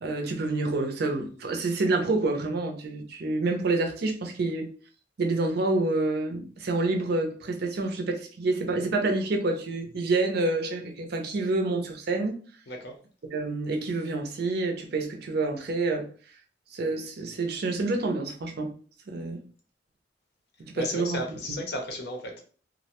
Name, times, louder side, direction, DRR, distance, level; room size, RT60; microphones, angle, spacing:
voice 1, 0.0-4.7 5.2-12.4 13.2-16.1 16.7-18.7 19.1-19.4 20.7-21.2, right 2 dB, 60° right, 0.5 m, -28 dB
voice 2, 12.7-13.0 20.7-22.4, left 1 dB, 60° left, 0.6 m, -34 dB
2.5 x 2.1 x 2.8 m
head